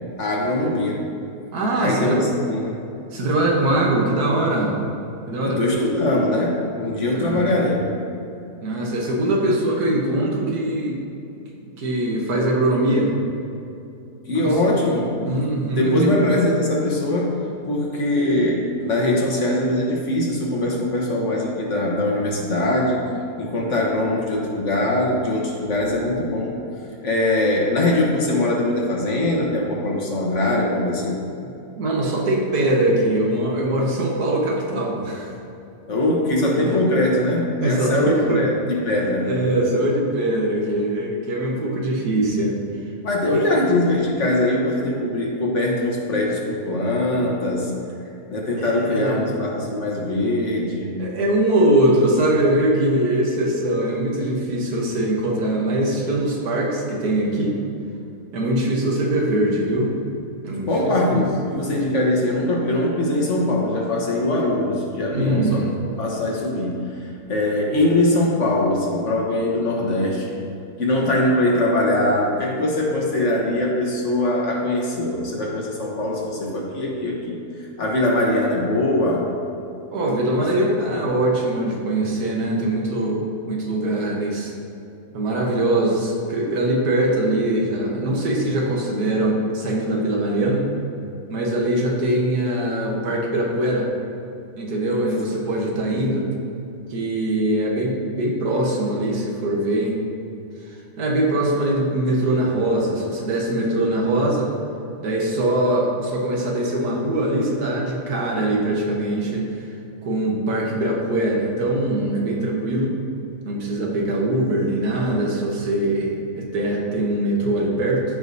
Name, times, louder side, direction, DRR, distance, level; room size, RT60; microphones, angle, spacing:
voice 1, 0.2-1.0 1.8-2.8 3.2-3.5 5.4-7.8 14.3-15.3 15.7-17.4 17.7-23.0 23.4-26.5 27.0-31.2 35.9-39.3 43.0-47.7 48.3-51.0 60.7-65.7 66.0-70.4 70.8-79.3 80.7-80.8 95.4-95.8, left 1 dB, 55° left, -2 dB, 1.4 m, -22 dB
voice 2, 1.5-2.2 3.1-4.8 5.3-5.6 7.2-7.5 8.6-11.0 11.6-13.1 14.4-14.5 15.3-16.1 31.8-35.3 36.6-36.7 37.6-38.4 39.2-42.6 43.3-43.4 48.6-49.2 51.0-57.6 58.3-59.9 60.4-60.7 61.0-61.2 65.1-65.7 79.9-84.5 85.1-90.7 91.3-93.9 94.6-96.3 96.9-100.0 100.7-104.5 105.0-109.5 110.0-112.9 113.5-118.0, right 1 dB, 80° right, -1 dB, 1.7 m, -22 dB
14.0 x 4.8 x 2.7 m, 2.7 s
omnidirectional pair, 1.6 m